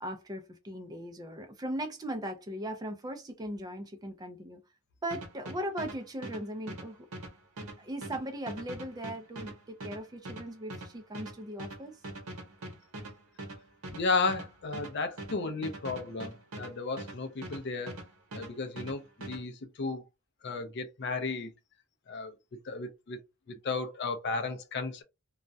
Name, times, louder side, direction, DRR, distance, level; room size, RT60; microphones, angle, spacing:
voice 1, 0.0-4.6 5.0-7.1 7.6-12.0, right 1 dB, 15° right, 0.4 m, -38 dB
sound 1, 5.1-18.1 18.3-19.4, right 1 dB, 80° right, 0.9 m, -42 dB
voice 2, 13.9-18.0 18.3-20.0 20.4-21.5 22.1-22.4 22.7-23.2 23.5-25.0, left 4 dB, 50° left, 0.4 m, -34 dB
2.3 x 2.0 x 2.6 m
head